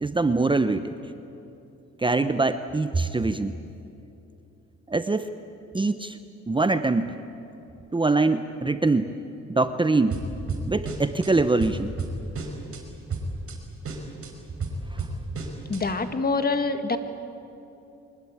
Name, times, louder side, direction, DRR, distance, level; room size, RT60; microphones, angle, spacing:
voice 1, 0.0-0.9 2.0-3.5 4.9-5.3 5.7-6.2 6.5-7.1 7.9-9.1 9.5-10.1 10.7-11.9, right 3 dB, 15° right, 10 dB, 0.9 m, -23 dB
sound 1, 10.1-11.3 11.6-12.8 13.1-13.6 13.8-15.8, right 3 dB, 50° right, 5.1 m, -32 dB
voice 2, 15.7-17.0, left 3 dB, 30° left, 8 dB, 2.0 m, -25 dB
24.5 x 20.5 x 8.8 m, 2.8 s
cardioid pair, 90°, 30 cm